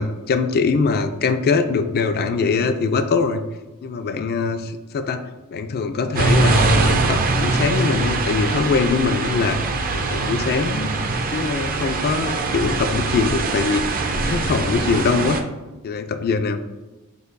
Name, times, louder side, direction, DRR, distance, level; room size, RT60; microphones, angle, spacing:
voice 1, 0.0-3.4 3.8-5.2 5.5-9.6 9.9-10.9 11.3-13.8 14.1-15.4 15.8-16.6, left 4 dB, 45° left, 9 dB, 0.3 m, -22 dB
sound 1, 6.1-15.4, right 3 dB, 40° right, 0.4 m, -22 dB
sound 2, 8.4-8.6 9.4-9.5 9.8-10.0 11.3-11.4 11.8-11.9 12.3-12.5, right 5 dB, 70° right, 1.3 m, -38 dB
6.3 x 2.7 x 2.5 m, 1.1 s
head